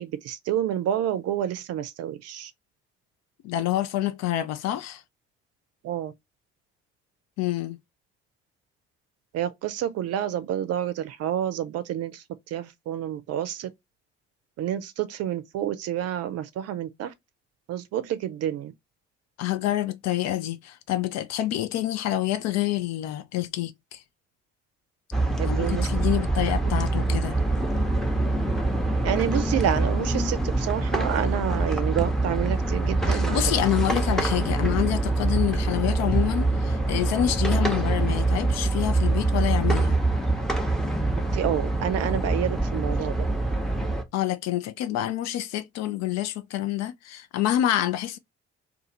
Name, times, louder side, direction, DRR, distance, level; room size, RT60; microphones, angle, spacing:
voice 1, 0.0-2.5 5.8-6.1 9.3-13.7 14.6-17.1 17.7-18.7 25.4-25.9 29.0-33.4 41.3-43.2, right 10 dB, 50° right, 0.5 m, -29 dB
voice 2, 3.4-5.0 7.4-7.8 19.4-24.0 25.5-27.4 33.1-40.0 44.1-48.2, left 13 dB, 55° left, 0.5 m, -27 dB
sound 1, 25.1-44.0, right 2 dB, ahead, 0.7 m, -25 dB
2.4 x 2.4 x 2.9 m
figure-of-eight pair, 40°, 32 cm